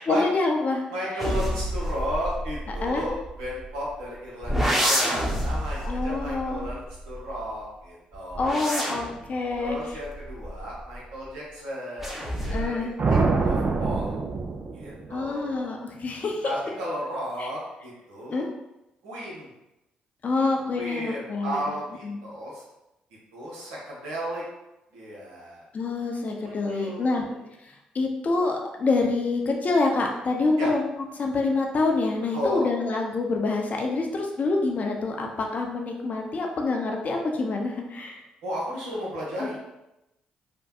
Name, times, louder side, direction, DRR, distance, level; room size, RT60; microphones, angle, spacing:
voice 1, 0.0-0.9 2.8-3.1 5.8-6.7 8.4-9.8 12.4-12.9 15.1-16.8 17.4-17.5 18.3-18.5 20.2-21.7 22.0-22.2 25.7-27.2 27.6-30.9 31.2-38.2 39.4-39.5, left 3 dB, 45° left, 1 dB, 0.6 m, -26 dB
voice 2, 0.9-9.0 9.6-12.7 13.1-14.2 14.7-15.7 16.4-18.4 19.0-19.5 20.7-22.6 23.3-24.4 24.9-25.7 26.4-27.4 30.6-30.7 32.3-32.7 38.4-39.6, equal, 80° right, -5 dB, 0.9 m, -34 dB
sound 1, 1.2-3.9 4.4-7.5 8.1-11.2 12.0-12.9 13.2-13.8, equal, 5° right, 0.9 m, -29 dB
sound 2, 13.0-15.3, right 4 dB, 45° right, 0.4 m, -25 dB
3.3 x 2.2 x 2.8 m, 0.92 s
hypercardioid pair, 45°, 3 cm